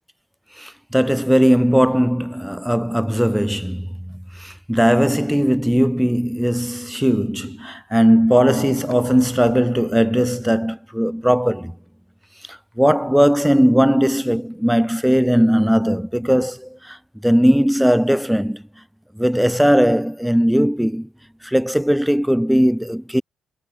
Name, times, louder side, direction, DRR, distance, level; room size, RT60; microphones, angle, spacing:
voice 1, 0.6-11.8 12.5-17.0 17.2-18.6 19.2-21.1 21.4-23.2, equal, ahead, 1.7 m, -18 dB
cardioid pair, 90°, 0 cm